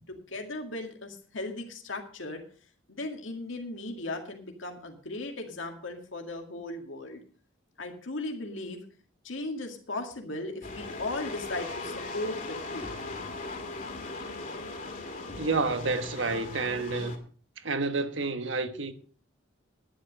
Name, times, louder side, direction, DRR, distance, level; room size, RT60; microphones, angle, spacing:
voice 1, 0.1-2.4 2.9-7.2 7.8-8.8 9.2-12.9, left 2 dB, 80° left, 2.1 m, -37 dB
sound 1, 10.6-17.2, left 3 dB, 45° left, 2.4 m, -38 dB
voice 2, 15.3-17.2 17.6-18.9, right 3 dB, 70° right, 1.3 m, -29 dB
11.5 x 10.5 x 5.3 m
head